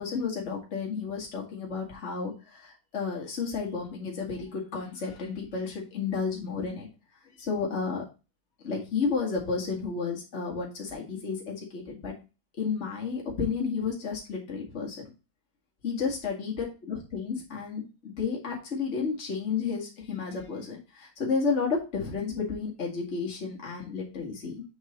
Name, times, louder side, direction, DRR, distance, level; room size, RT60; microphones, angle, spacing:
voice 1, 0.0-6.9 7.4-8.0 8.6-12.1 12.6-15.0 15.8-24.6, left 5 dB, 35° left, -2 dB, 2.1 m, -32 dB
6.5 x 4.6 x 3.8 m, 0.30 s
omnidirectional pair, 2.1 m